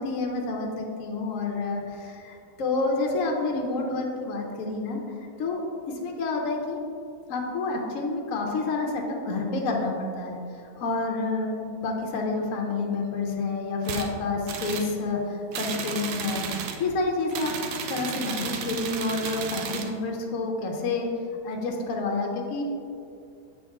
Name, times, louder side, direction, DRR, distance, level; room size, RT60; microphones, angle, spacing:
voice 1, 0.0-5.0 5.4-5.6 6.0-6.8 7.3-10.4 10.7-16.5 16.8-17.6 17.9-21.1 21.4-22.6, left 3 dB, 60° left, 0 dB, 1.0 m, -29 dB
sound 1, 13.8-14.1 14.5-14.9 15.5-16.8 17.3-19.9, right 6 dB, 75° right, 1.1 m, -33 dB
7.5 x 4.6 x 3.6 m, 2.4 s
omnidirectional pair, 1.8 m